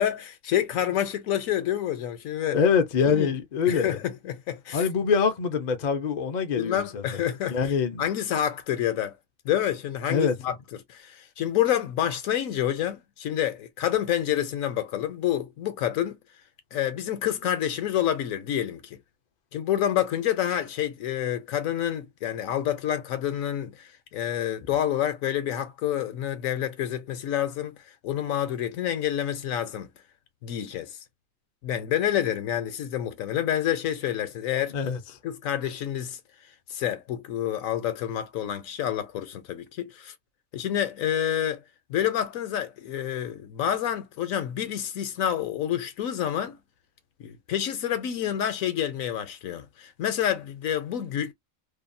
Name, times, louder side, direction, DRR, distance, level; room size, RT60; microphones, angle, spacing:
voice 1, 0.0-2.6 3.1-3.3 3.7-4.8 6.6-7.7 8.0-9.2 9.4-10.5 10.9-16.2 16.7-19.0 19.5-27.8 28.0-29.9 30.4-31.0 31.6-34.7 35.2-36.2 36.7-40.1 40.5-41.6 41.9-46.6 47.2-51.3, left 10 dB, 70° left, 1.0 m, -28 dB
voice 2, 2.5-4.0 4.7-7.2 7.5-8.0 10.1-10.4 34.7-35.0, left 6 dB, 50° left, 0.5 m, -24 dB
2.8 x 2.3 x 2.5 m
omnidirectional pair, 1.5 m